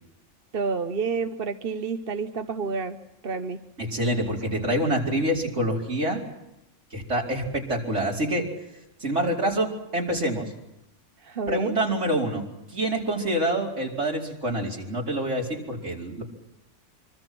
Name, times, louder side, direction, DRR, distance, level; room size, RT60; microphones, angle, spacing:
voice 1, 0.5-3.0 3.2-3.6 11.2-11.8, right 5 dB, 50° right, 8 dB, 1.1 m, -29 dB
voice 2, 3.8-6.2 6.9-8.5 9.0-10.5 11.5-12.4 12.7-16.2, right 1 dB, 70° right, -1 dB, 5.1 m, -26 dB
25.5 x 25.0 x 6.1 m, 0.92 s
omnidirectional pair, 1.3 m